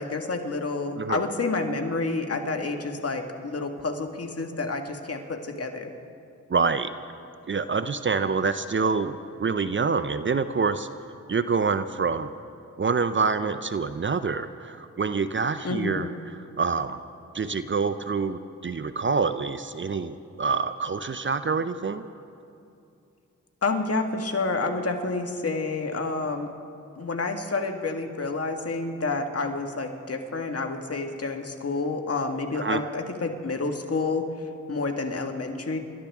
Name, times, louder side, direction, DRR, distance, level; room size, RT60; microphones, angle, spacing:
voice 1, 0.0-5.9 15.6-16.1 23.6-26.5 27.0-34.2 34.7-35.8, left 3 dB, 45° left, 4 dB, 1.8 m, -29 dB
voice 2, 6.5-6.9 7.5-10.9 11.3-12.3 12.8-16.1 16.6-17.0 17.3-22.0 32.6-32.8, right 5 dB, 35° right, 12 dB, 0.6 m, -26 dB
27.5 x 13.5 x 3.6 m, 2.6 s
cardioid pair, 50°, 33 cm